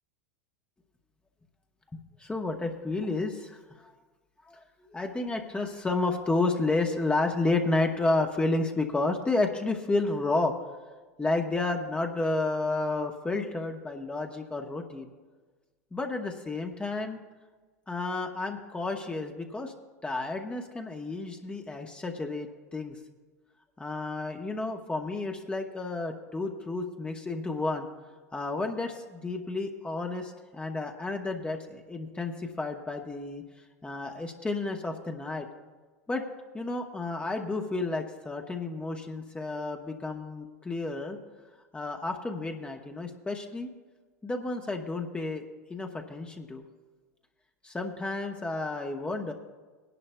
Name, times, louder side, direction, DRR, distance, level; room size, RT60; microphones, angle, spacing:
voice 1, 2.2-3.9 4.4-4.6 4.9-10.5 11.2-15.1 15.9-17.2 17.9-19.7 20.0-23.0 23.8-27.9 28.3-33.4 33.8-35.5 36.1-36.3 36.5-41.2 41.7-43.7 44.2-45.4 45.7-46.6 47.6-49.3, left 2 dB, 15° left, 3 dB, 1.0 m, -31 dB
20.5 x 11.0 x 2.3 m, 1.3 s
hypercardioid pair, 90°, 8 cm